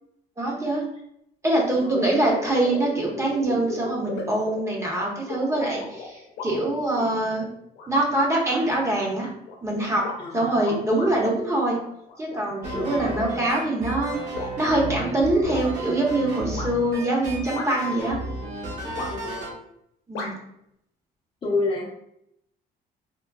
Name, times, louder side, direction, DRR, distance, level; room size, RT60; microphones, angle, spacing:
voice 1, 0.4-0.8 1.4-7.5 7.9-9.3 9.6-10.0 10.3-11.8 12.2-18.2 20.1-20.3, right 1 dB, 15° right, -2 dB, 0.8 m, -24 dB
sound 1, 1.7-1.8 2.1-7.2 7.7-8.2 8.5-8.6 9.2-11.1 11.5-12.4 12.8-15.1 15.5-15.6 16.5-16.7 17.5-18.0 19.0-19.4 20.1-20.3, left 4 dB, 80° left, 0.7 m, -36 dB
voice 2, 1.7-2.1 10.2-10.6 12.7-13.2 19.1-19.5 21.4-21.9, left 3 dB, 30° left, -3 dB, 0.6 m, -29 dB
sound 2, 12.6-19.6, right 1 dB, 50° right, 1.2 m, -33 dB
3.7 x 2.2 x 2.3 m, 0.76 s
cardioid pair, 110°, 17 cm